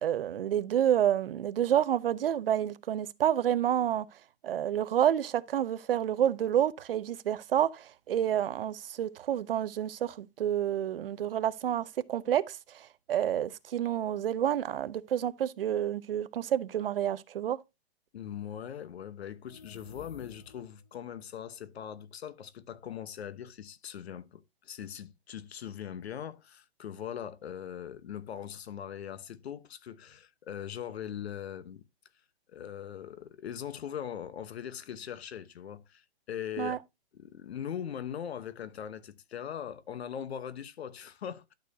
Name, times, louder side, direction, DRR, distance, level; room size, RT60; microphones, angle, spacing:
voice 1, 0.0-4.1 4.4-17.6 36.6-36.8, right 10 dB, 60° right, 0.7 m, -29 dB
voice 2, 18.1-31.8 32.5-36.8 37.1-41.5, left 9 dB, 75° left, 1.0 m, -41 dB
sound 1, 19.3-20.9, left 6 dB, 25° left, 0.6 m, -53 dB
11.5 x 6.4 x 2.7 m
hypercardioid pair, 175°, 32 cm